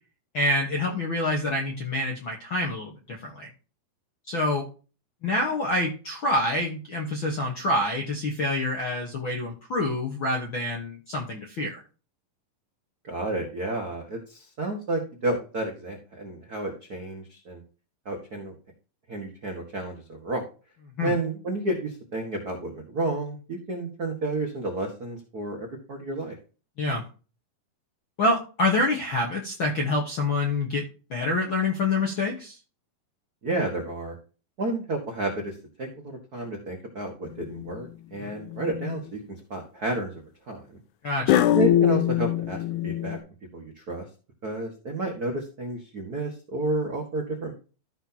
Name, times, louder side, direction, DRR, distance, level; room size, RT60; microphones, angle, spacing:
voice 1, 0.3-3.5 4.3-4.7 5.2-11.7 21.0-21.1 26.8-27.0 28.2-30.8 31.1-32.5 38.2-38.3 41.0-41.4, left 2 dB, 60° left, 1 dB, 1.2 m, -27 dB
voice 2, 13.0-17.6 18.0-18.5 19.1-20.5 21.0-26.3 33.4-34.2 34.6-39.2 39.5-40.1 40.5-40.6 41.5-43.2 43.5-44.1 44.4-47.5, right 2 dB, 70° right, 2 dB, 0.9 m, -31 dB
sound 1, 37.4-37.9 38.5-39.0 41.3-43.2, left 12 dB, 90° left, 1.6 m, -23 dB
14.0 x 5.9 x 2.8 m, 0.35 s
omnidirectional pair, 4.2 m